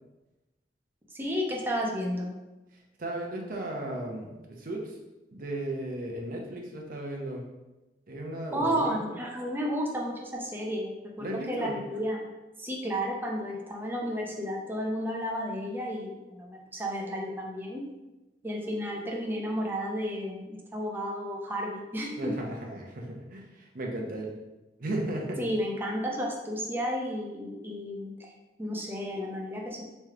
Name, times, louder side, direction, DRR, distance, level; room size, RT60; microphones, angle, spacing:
voice 1, 1.1-2.3 8.5-12.2 12.6-17.8 18.4-22.3 25.4-28.3 28.6-29.8, equal, 10° right, -1 dB, 0.6 m, -32 dB
voice 2, 3.0-5.0 5.3-7.4 8.1-9.0 11.2-11.7 22.2-24.3 24.8-25.4, right 1 dB, 55° right, 0 dB, 0.7 m, -35 dB
3.3 x 3.1 x 3.6 m, 1.1 s
head